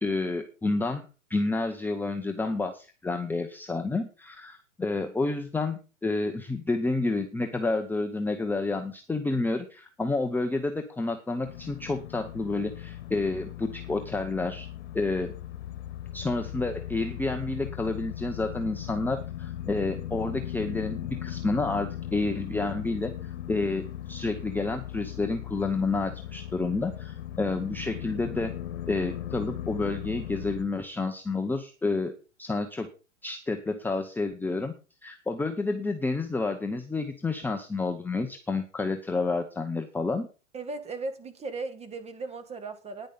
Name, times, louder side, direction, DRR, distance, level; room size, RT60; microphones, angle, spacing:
voice 1, 0.0-14.7 14.9-15.3 16.1-28.5 28.9-32.1 32.4-32.9 33.2-34.7 35.0-40.3, left 3 dB, 5° left, 5 dB, 0.9 m, -30 dB
sound 1, 11.4-30.7, left 11 dB, 65° left, 1.3 m, -38 dB
voice 2, 40.5-43.1, right 3 dB, 15° right, 9 dB, 1.9 m, -37 dB
10.0 x 10.0 x 5.3 m, 0.34 s
hypercardioid pair, 110°, 38 cm